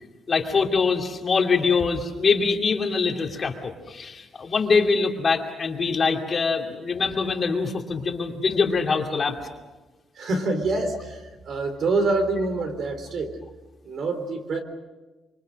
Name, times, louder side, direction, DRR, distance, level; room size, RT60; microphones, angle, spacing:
voice 1, 0.3-9.4, left 4 dB, 35° left, 2 dB, 2.5 m, -23 dB
voice 2, 10.2-13.4 13.8-14.6, right 2 dB, 50° right, 6 dB, 3.6 m, -26 dB
25.5 x 24.5 x 6.4 m, 1.2 s
cardioid pair, 155°, 0 cm